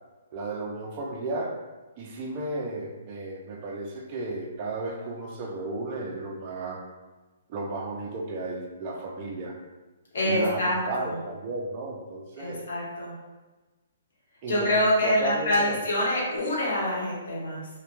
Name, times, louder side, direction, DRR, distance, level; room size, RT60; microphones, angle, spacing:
voice 1, 0.3-1.6 2.0-6.8 7.5-9.6 10.2-12.6 14.4-14.7 15.0-15.9, right 2 dB, 25° right, 0 dB, 0.3 m, -34 dB
voice 2, 10.1-11.2 12.4-13.2 14.5-17.7, left 1 dB, 60° left, -5 dB, 0.9 m, -26 dB
2.1 x 2.1 x 2.9 m, 1.2 s
hypercardioid pair, 175°, 0 cm